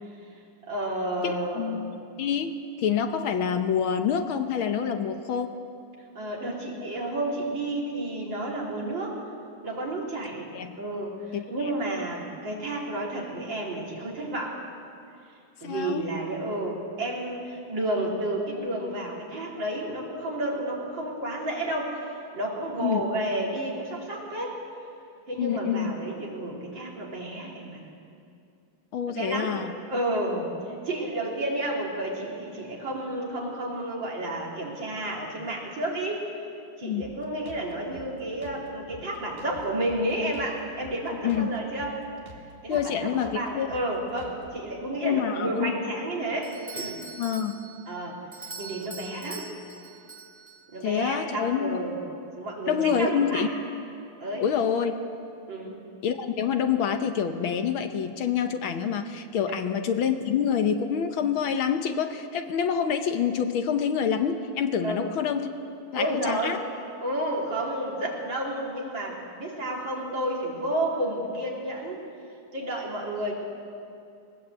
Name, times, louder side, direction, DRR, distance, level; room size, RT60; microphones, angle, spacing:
voice 1, 0.7-1.7 6.1-9.2 9.6-10.5 10.8-14.6 15.6-24.6 25.3-27.8 29.1-29.6 29.9-36.2 36.8-42.0 42.6-47.0 47.9-48.2 48.6-49.5 50.7-52.0 52.4-53.4 54.2-54.5 55.5-55.8 59.5-59.6 64.8-65.0 65.9-66.6 67.0-72.0 72.5-73.3, right 1 dB, 55° right, -2 dB, 4.0 m, -31 dB
voice 2, 1.2-5.6 10.5-10.7 11.3-11.4 15.6-16.1 22.8-23.0 25.4-25.9 28.9-29.7 36.8-37.1 41.1-41.5 42.7-43.7 45.0-45.7 47.2-47.6 50.8-51.9 52.7-53.5 54.4-54.9 56.0-65.5 65.9-66.6, left 7 dB, 70° left, 7 dB, 1.7 m, -27 dB
Drum kit, 37.0-44.6, right 1 dB, 25° right, 2.2 m, -48 dB
Doorbell, 46.4-50.9, right 4 dB, 10° right, 1.0 m, -42 dB
20.5 x 19.0 x 8.1 m, 2.5 s
omnidirectional pair, 2.4 m